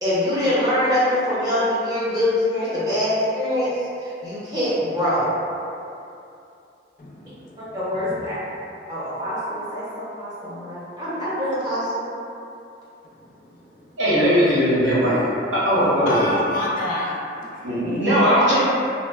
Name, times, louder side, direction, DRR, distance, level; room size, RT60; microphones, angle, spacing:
voice 1, 0.0-5.3 7.7-8.3 8.9-12.0, left 1 dB, 20° right, -11 dB, 0.6 m, -24 dB
voice 2, 7.0-8.5 13.1-14.0 14.4-15.2 16.1-17.2, left 1 dB, 45° left, -4 dB, 0.3 m, -30 dB
voice 3, 14.0-15.2 15.5-16.3 17.6-18.6, equal, 80° right, -9 dB, 0.9 m, -19 dB
2.8 x 2.0 x 2.2 m, 2.6 s
head